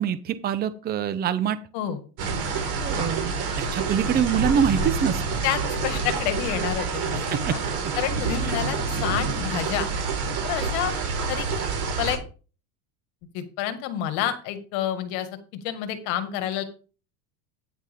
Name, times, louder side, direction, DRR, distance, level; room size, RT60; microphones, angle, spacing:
voice 1, 0.0-1.6 2.8-5.4 7.1-7.6 7.8-7.9 8.4-8.5, right 8 dB, 20° right, 13 dB, 0.6 m, -25 dB
sound 1, 2.2-12.2, right 4 dB, 50° right, 4.5 m, -27 dB
voice 2, 5.4-7.6 8.0-9.9 10.4-10.9 11.3-11.5 12.0-12.2 13.3-15.3 15.6-16.6, left 11 dB, 60° left, 9 dB, 1.8 m, -28 dB
9.4 x 8.3 x 3.6 m, 0.37 s
supercardioid pair, 140°, 44 cm